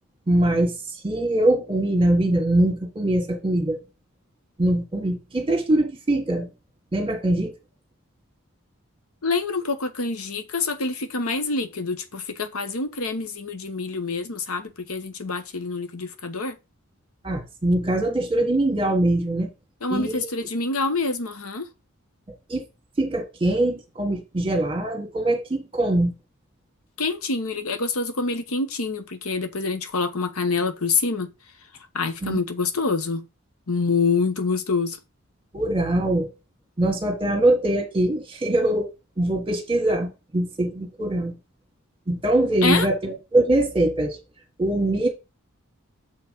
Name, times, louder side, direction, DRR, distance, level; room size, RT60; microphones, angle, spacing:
voice 1, 0.3-3.8 4.6-6.5 6.9-7.5 17.2-19.5 19.9-20.2 22.5-22.6 23.0-26.1 32.2-32.4 35.5-36.3 36.8-38.9 39.2-41.3 42.1-44.2 44.6-45.1, right 1 dB, 25° right, 1.4 m, -22 dB
voice 2, 9.2-16.6 19.8-21.7 27.0-31.3 31.9-33.2 33.7-35.0 42.6-42.9, left 4 dB, 85° left, 1.1 m, -26 dB
7.0 x 4.5 x 5.2 m
head